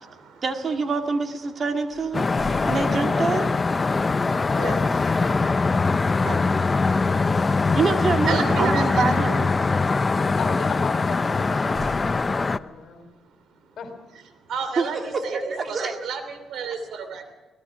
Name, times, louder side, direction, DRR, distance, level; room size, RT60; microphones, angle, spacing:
voice 1, 0.4-2.2 2.7-3.5 6.2-6.4 7.7-9.5 14.8-16.0, right 4 dB, 45° right, 5 dB, 2.1 m, -25 dB
sound 1, 1.9-3.5 6.3-6.6 7.0-7.3 11.3-12.9, left 1 dB, 15° right, 6.5 m, -41 dB
sound 2, 2.1-12.6, left 4 dB, 30° left, 0.6 m, -22 dB
voice 2, 8.3-9.2 14.5-17.3, right 5 dB, 75° right, 9 dB, 2.9 m, -31 dB
voice 3, 10.4-13.1 13.8-13.9, left 6 dB, 60° left, 6 dB, 3.5 m, -36 dB
23.5 x 18.5 x 6.2 m, 1.2 s
cardioid pair, 90°, 0 cm